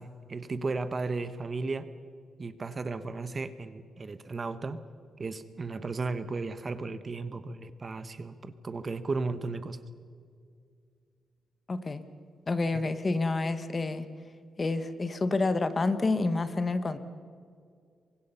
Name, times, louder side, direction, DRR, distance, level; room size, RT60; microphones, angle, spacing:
voice 1, 0.0-1.9 2.4-4.8 5.2-9.8 12.7-12.8, right 3 dB, 30° right, 12 dB, 1.0 m, -35 dB
voice 2, 11.7-12.0 12.5-14.1 14.6-17.0, left 3 dB, 25° left, 11 dB, 1.2 m, -28 dB
28.0 x 24.5 x 5.6 m, 2.2 s
wide cardioid pair, 155°, 0 cm